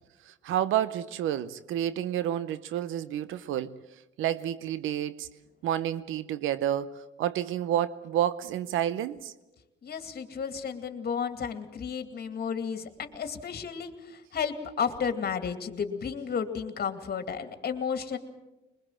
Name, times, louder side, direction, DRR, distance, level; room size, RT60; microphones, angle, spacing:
voice 1, 0.3-3.8 4.2-5.3 5.6-9.3, right 11 dB, 85° right, 15 dB, 0.7 m, -30 dB
voice 2, 9.8-18.2, left 6 dB, 50° left, 8 dB, 2.4 m, -33 dB
22.5 x 21.0 x 7.5 m, 1.0 s
cardioid pair, 90°, 20 cm